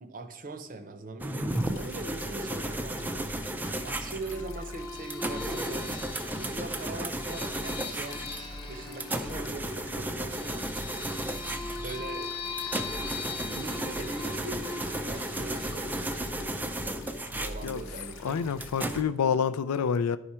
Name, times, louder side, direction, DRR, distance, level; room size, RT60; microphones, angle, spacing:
voice 1, 0.0-3.4 3.8-6.1 6.4-8.3 8.7-10.7 11.8-12.3 13.4-16.4 17.3-18.4, right 2 dB, 40° right, 0.7 m, -41 dB
sound 1, 1.2-19.0, right 1 dB, 10° right, 0.3 m, -34 dB
sound 2, 1.5-19.0, left 5 dB, 60° left, 0.9 m, -51 dB
sound 3, 4.3-17.5, left 4 dB, 20° left, 0.7 m, -41 dB
voice 2, 18.2-20.2, left 6 dB, 85° left, 0.4 m, -27 dB
10.5 x 4.8 x 4.3 m
head